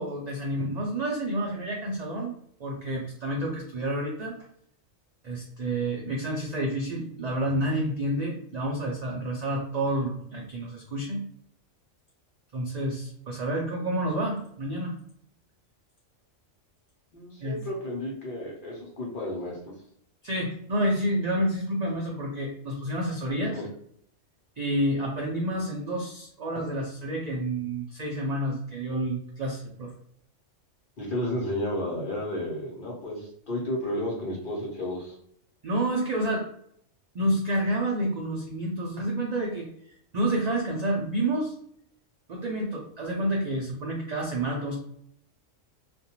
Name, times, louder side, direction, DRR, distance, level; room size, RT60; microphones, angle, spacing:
voice 1, 0.0-2.3 2.6-4.4 5.2-11.2 12.5-14.9 17.4-17.6 20.2-23.6 24.6-29.9 35.6-36.5 37.1-39.7 40.1-41.5 42.3-44.8, right 1 dB, 70° right, -2 dB, 0.4 m, -29 dB
voice 2, 17.1-19.6 23.5-23.7 31.0-35.2, left 1 dB, 50° left, -3 dB, 0.9 m, -32 dB
2.4 x 2.2 x 2.8 m, 0.67 s
omnidirectional pair, 1.3 m